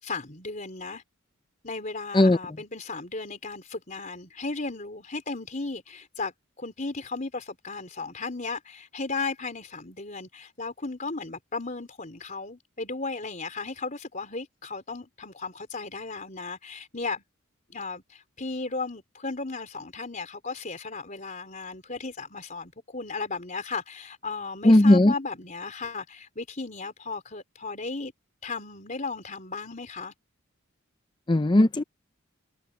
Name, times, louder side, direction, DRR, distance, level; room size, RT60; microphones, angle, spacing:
voice 1, 0.0-1.0 1.6-17.2 17.7-28.1 28.4-30.1, left 3 dB, 40° left, 3.8 m, -35 dB
voice 2, 24.7-25.1 31.3-31.8, left 1 dB, 20° left, 0.5 m, -17 dB
head